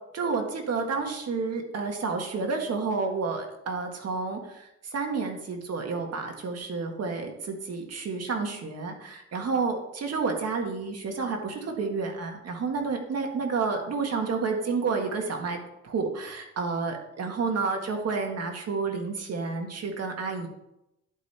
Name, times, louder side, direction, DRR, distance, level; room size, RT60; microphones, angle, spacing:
voice 1, 0.1-15.6 15.8-20.5, right 4 dB, 55° right, 3 dB, 1.7 m, -30 dB
11.0 x 5.2 x 4.3 m, 0.85 s
cardioid pair, 90°, 30 cm